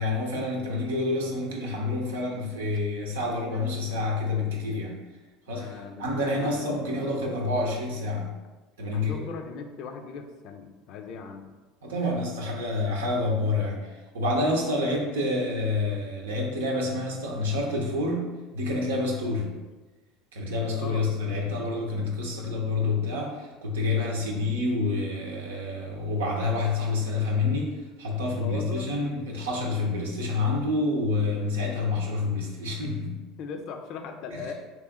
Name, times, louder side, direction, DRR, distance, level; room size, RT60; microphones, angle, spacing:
voice 1, 0.0-5.0 5.5-8.3 8.8-9.3 11.8-19.5 20.3-33.2 34.3-34.4, left 2 dB, 85° right, 0 dB, 0.7 m, -28 dB
voice 2, 5.5-6.8 8.9-11.5 14.4-14.6 20.7-21.0 28.4-28.9 33.4-34.5, left 5 dB, 60° left, 5 dB, 0.4 m, -39 dB
3.0 x 3.0 x 3.5 m, 1.2 s
hypercardioid pair, 75°, 0 cm